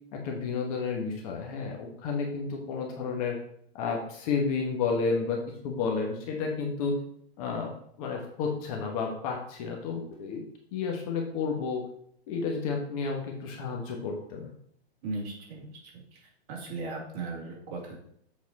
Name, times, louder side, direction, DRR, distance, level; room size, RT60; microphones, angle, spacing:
voice 1, 0.1-3.4 3.7-5.4 5.6-7.0 7.4-7.7 8.0-10.4 10.7-11.8 12.3-14.5, left 5 dB, 35° left, 1 dB, 1.2 m, -31 dB
voice 2, 15.0-15.7 16.1-16.2 16.5-18.0, right 3 dB, 40° right, -3 dB, 2.4 m, -37 dB
7.5 x 4.2 x 4.1 m, 0.69 s
hypercardioid pair, 150°, 32 cm